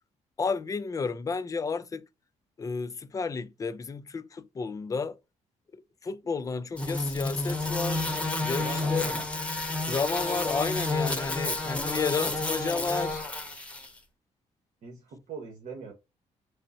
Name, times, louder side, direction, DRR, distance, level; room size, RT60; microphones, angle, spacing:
voice 1, 0.4-2.0 2.6-5.2 5.7-8.1 8.4-9.0 9.9-13.2, left 4 dB, 25° left, 0.4 m, -31 dB
sound 1, 6.8-13.9, left 2 dB, 10° left, 0.9 m, -30 dB
voice 2, 8.6-9.3 14.8-15.9, right 5 dB, 65° right, 1.0 m, -41 dB
5.2 x 2.1 x 4.0 m
cardioid pair, 115°, 13 cm